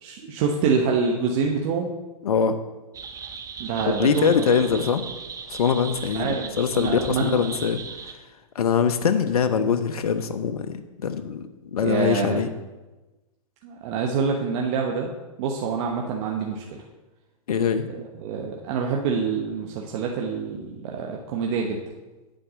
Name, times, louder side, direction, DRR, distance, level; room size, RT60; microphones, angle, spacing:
voice 1, 0.0-1.9 3.6-4.3 6.1-7.4 11.8-12.4 13.6-15.1 15.4-16.8 17.9-21.8, right 5 dB, 50° right, 0 dB, 1.1 m, -26 dB
voice 2, 2.2-2.6 3.9-5.0 5.5-8.1 8.5-12.5 17.5-17.9, left 6 dB, 80° left, 10 dB, 0.7 m, -23 dB
sound 1, 2.9-8.1, right 6 dB, 15° right, 0.7 m, -38 dB
9.0 x 4.6 x 6.2 m, 1.1 s
hypercardioid pair, 115°, 19 cm